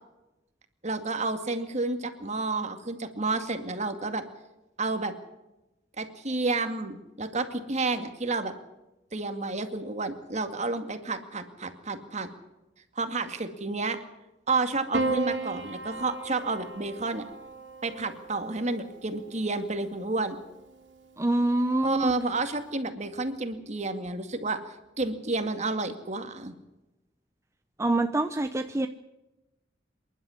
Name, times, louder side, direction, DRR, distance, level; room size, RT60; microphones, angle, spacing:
voice 1, 0.8-4.2 4.8-5.1 6.0-8.5 9.1-12.3 13.0-14.0 14.5-17.2 17.8-20.4 21.8-24.6 25.0-26.5, right 3 dB, 40° right, 8 dB, 2.2 m, -30 dB
Piano, 14.9-19.4 20.6-21.3, right 3 dB, 75° right, 3.1 m, -35 dB
voice 2, 21.2-22.1 27.8-28.9, right 2 dB, 15° right, 7 dB, 0.8 m, -25 dB
27.0 x 11.5 x 9.7 m, 0.99 s
head